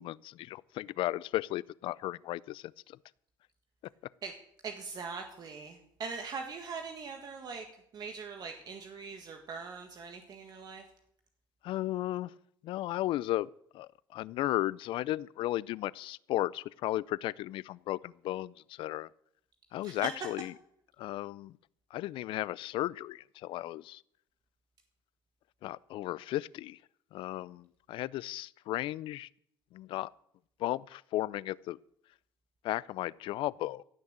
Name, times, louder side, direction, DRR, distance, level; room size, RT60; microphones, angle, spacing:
voice 1, 0.0-2.6 11.6-12.3 12.6-13.5 13.7-19.1 19.7-20.5 21.0-21.6 21.9-24.0 25.6-26.8 27.1-29.3 29.7-30.1 30.6-31.8 32.6-33.8, left 15 dB, 70° left, 22 dB, 0.4 m, -35 dB
voice 2, 4.6-7.6 7.9-10.8 19.8-20.1, right 5 dB, 45° right, 4 dB, 1.7 m, -41 dB
16.0 x 6.4 x 8.8 m, 0.70 s
cardioid pair, 105°, 9 cm